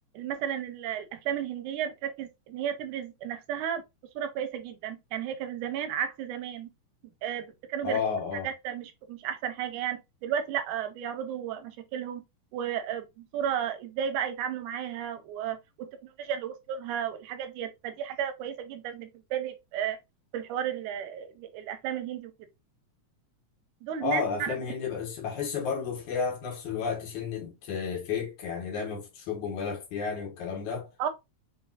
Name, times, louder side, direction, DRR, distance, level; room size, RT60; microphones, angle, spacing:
voice 1, 0.1-3.8 4.2-6.7 7.2-8.0 8.4-12.2 12.5-20.0 20.3-22.3 23.8-24.5 31.0-31.1, right 9 dB, 85° right, 2.1 m, -33 dB
voice 2, 7.8-8.5 24.0-30.9, left 6 dB, 70° left, 2.8 m, -32 dB
5.3 x 3.0 x 2.7 m
omnidirectional pair, 3.5 m